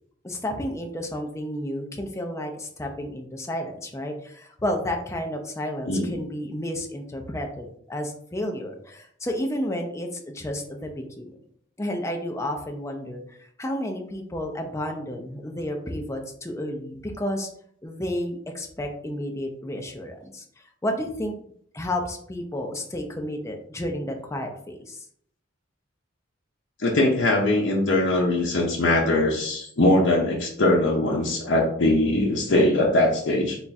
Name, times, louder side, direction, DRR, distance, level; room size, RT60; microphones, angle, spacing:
voice 1, 0.2-11.4 11.8-17.5 17.8-20.4 20.8-21.3 21.7-25.1, left 1 dB, 15° left, 3 dB, 0.5 m, -31 dB
voice 2, 26.8-33.6, left 1 dB, 65° left, -2 dB, 0.7 m, -21 dB
3.4 x 2.4 x 4.1 m, 0.65 s
head